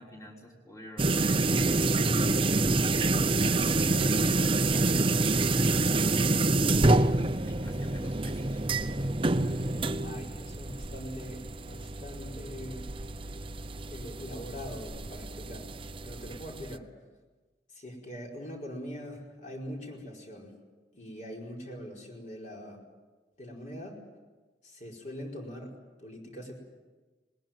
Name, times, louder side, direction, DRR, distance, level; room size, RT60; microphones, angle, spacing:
voice 1, 0.0-6.1 6.9-8.6, equal, 20° left, 1 dB, 3.4 m, -49 dB
sound 1, 1.0-16.8, right 2 dB, 30° right, 0.7 m, -27 dB
voice 2, 9.9-12.9 13.9-15.7 16.0-16.9 17.7-20.5 20.9-22.8 23.4-24.0 24.6-26.5, equal, 45° left, -1 dB, 4.8 m, -42 dB
21.0 x 20.0 x 9.1 m, 1.3 s
head